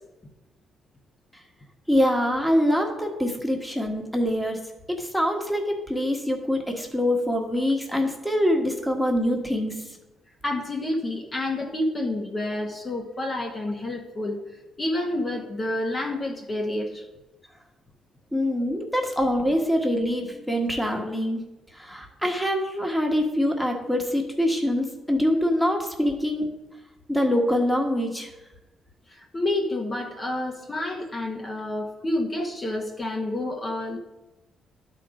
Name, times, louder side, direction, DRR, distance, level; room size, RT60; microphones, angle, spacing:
voice 1, 1.9-4.6 4.9-9.8 18.3-21.4 21.7-26.5 27.1-28.3, equal, 5° left, 2 dB, 1.4 m, -24 dB
voice 2, 10.4-14.4 14.8-17.0 29.1-34.0, left 1 dB, 30° left, 1 dB, 1.2 m, -29 dB
11.5 x 4.5 x 5.0 m, 1.0 s
cardioid pair, 90°, 0 cm